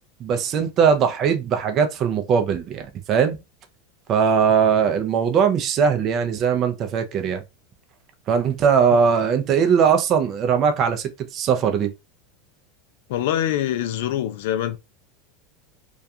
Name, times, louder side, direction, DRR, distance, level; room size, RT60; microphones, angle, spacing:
voice 1, 0.2-3.4 4.1-7.4 8.3-11.9, right 7 dB, 35° right, 0.4 m, -20 dB
voice 2, 13.1-14.8, left 11 dB, 75° left, 0.4 m, -24 dB
2.3 x 2.2 x 2.6 m
supercardioid pair, 140°, 0 cm